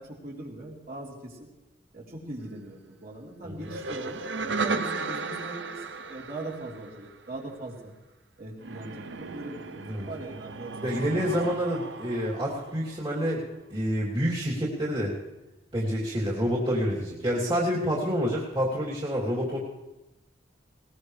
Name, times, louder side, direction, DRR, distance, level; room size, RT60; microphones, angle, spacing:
voice 1, 0.0-1.5 1.9-4.2 4.5-7.9 8.4-11.0, right 1 dB, 50° right, -4 dB, 4.0 m, -40 dB
sound 1, 3.6-7.3 8.6-13.3, right 4 dB, 65° right, 0.8 m, -35 dB
voice 2, 10.8-13.4 13.7-15.1 15.7-19.6, equal, 30° right, -6 dB, 3.1 m, -28 dB
21.0 x 19.5 x 3.4 m, 0.99 s
head